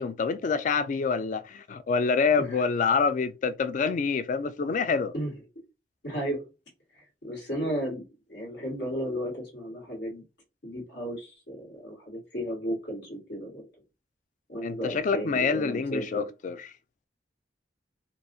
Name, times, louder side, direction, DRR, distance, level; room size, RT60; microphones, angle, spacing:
voice 1, 0.0-5.1 14.6-16.6, left 5 dB, 45° left, 0.3 m, -26 dB
voice 2, 6.0-6.4 6.9-8.0 8.3-10.2 10.6-13.6 14.5-16.2, equal, 70° left, 1.8 m, -34 dB
4.5 x 2.4 x 2.6 m
head